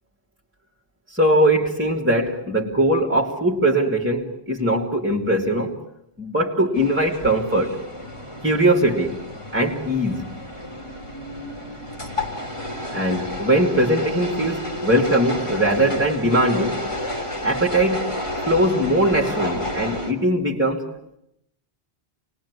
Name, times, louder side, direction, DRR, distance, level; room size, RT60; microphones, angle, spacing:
voice 1, 1.1-5.8 6.2-7.8 8.4-9.2 9.5-10.3 12.9-16.8 17.4-18.1 18.5-20.9, right 1 dB, 10° right, -2 dB, 2.6 m, -20 dB
sound 1, 6.7-20.1, left 1 dB, 30° left, 3.9 m, -31 dB
28.0 x 20.0 x 9.7 m, 0.81 s
omnidirectional pair, 1.1 m